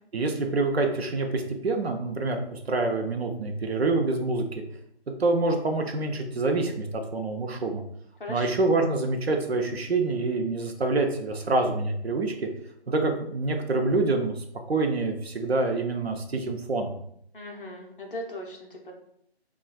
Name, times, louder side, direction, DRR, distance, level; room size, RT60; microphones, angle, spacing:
voice 1, 0.1-4.5 5.2-7.8 8.3-12.5 12.9-16.9, right 3 dB, 70° right, 4 dB, 0.7 m, -26 dB
voice 2, 17.3-18.9, left 1 dB, 50° left, 0 dB, 0.8 m, -38 dB
4.2 x 2.3 x 2.2 m, 0.72 s
figure-of-eight pair, 170°, 33 cm